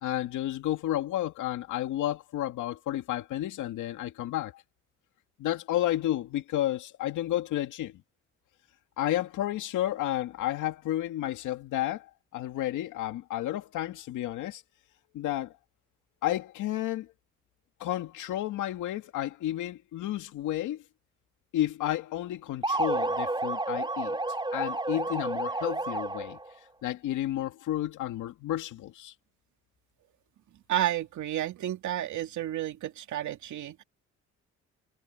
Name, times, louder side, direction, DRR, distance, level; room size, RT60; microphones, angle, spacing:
voice 1, 0.0-4.6 5.4-8.0 9.0-14.6 15.1-15.6 16.2-17.1 17.8-20.8 21.5-24.2 24.5-26.4 26.8-29.1, left 13 dB, 85° left, 2.3 m, -31 dB
sound 1, 22.6-26.5, right 2 dB, 15° right, 3.7 m, -30 dB
voice 2, 30.7-33.8, right 12 dB, 75° right, 2.8 m, -31 dB
cardioid pair, 90°, 30 cm